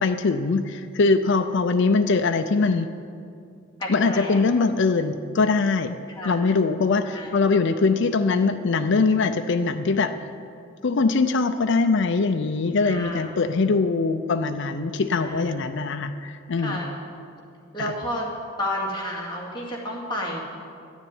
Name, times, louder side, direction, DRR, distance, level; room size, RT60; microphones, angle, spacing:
voice 1, 0.0-2.9 3.9-6.0 6.2-10.1 10.8-16.8 17.8-17.9, left 4 dB, 60° left, 7 dB, 0.5 m, -22 dB
voice 2, 3.8-4.4 6.2-6.4 7.1-7.3 12.8-13.3 15.1-15.6 16.6-16.9 17.7-18.3 18.6-20.4, left 1 dB, 25° left, -3 dB, 2.4 m, -31 dB
11.5 x 7.2 x 9.8 m, 2.4 s
head